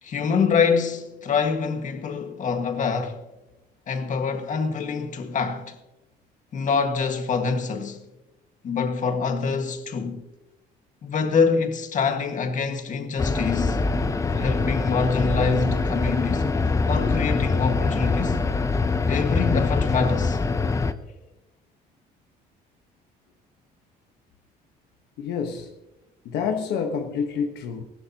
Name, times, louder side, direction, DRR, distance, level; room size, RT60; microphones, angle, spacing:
voice 1, 0.0-3.2 3.9-5.8 6.5-8.1 8.6-10.2 11.0-13.8 14.3-16.5 16.9-18.5 19.1-20.4, left 5 dB, 50° left, 1.8 m, -25 dB
sound 1, 13.2-20.9, left 3 dB, 20° left, 0.7 m, -24 dB
voice 2, 25.2-25.7 26.2-27.8, left 6 dB, 80° left, 1.3 m, -28 dB
19.0 x 16.5 x 3.0 m
cardioid pair, 110°, 17 cm